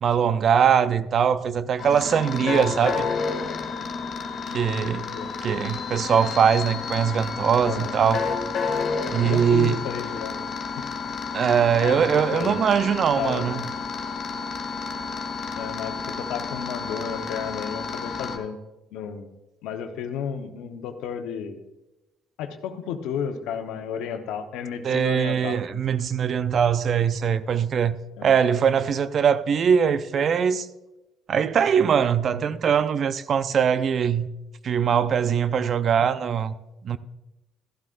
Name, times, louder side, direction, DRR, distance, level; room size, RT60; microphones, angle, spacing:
voice 1, 0.0-3.0 4.5-5.1 5.4-8.2 9.1-9.8 11.3-13.6 24.8-28.0 28.2-30.7 31.3-34.3 34.6-36.5 36.8-37.0, right 7 dB, 55° right, 0.5 m, -22 dB
sound 1, 1.8-18.4, left 5 dB, 55° left, 1.9 m, -31 dB
voice 2, 4.5-5.3 7.6-7.9 9.2-10.4 10.6-10.8 11.8-12.6 13.2-13.5 15.5-18.6 18.9-19.3 19.6-21.6 22.4-25.6 28.2-28.3, left 7 dB, 80° left, 1.0 m, -33 dB
14.0 x 12.0 x 2.5 m
supercardioid pair, 65°, 0 cm